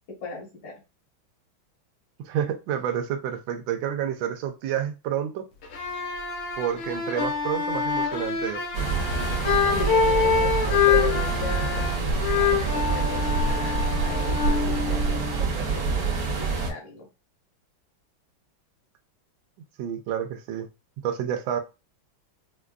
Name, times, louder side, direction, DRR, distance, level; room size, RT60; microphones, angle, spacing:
voice 1, 0.1-0.7 9.7-17.1, left 3 dB, 70° left, -1 dB, 2.0 m, -37 dB
voice 2, 2.2-5.5 6.6-8.6 19.8-20.7 21.0-21.6, right 9 dB, 80° right, 6 dB, 1.4 m, -29 dB
sound 1, 5.6-15.4, left 6 dB, 85° left, 1.7 m, -26 dB
sound 2, 8.7-16.7, right 4 dB, 55° right, 1.2 m, -26 dB
5.1 x 2.2 x 2.4 m, 0.28 s
omnidirectional pair, 2.2 m